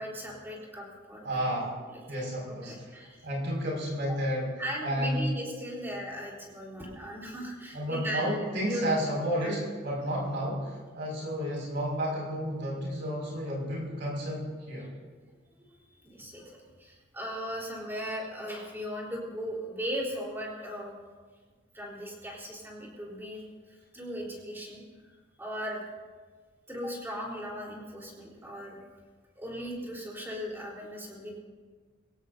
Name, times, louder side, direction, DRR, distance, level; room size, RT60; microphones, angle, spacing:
voice 1, 0.0-1.5 2.1-2.2 2.7-3.2 4.6-8.3 8.6-8.8 9.4-9.6 15.6-21.0 21.7-23.4 23.7-24.8 25.4-25.8 26.7-28.8 29.4-31.4, equal, 10° right, -3 dB, 4.0 m, -38 dB
voice 2, 1.2-1.8 2.1-2.9 3.2-4.6 4.8-5.3 7.7-14.9, equal, 60° right, -4 dB, 5.9 m, -31 dB
23.0 x 17.0 x 2.8 m, 1.5 s
head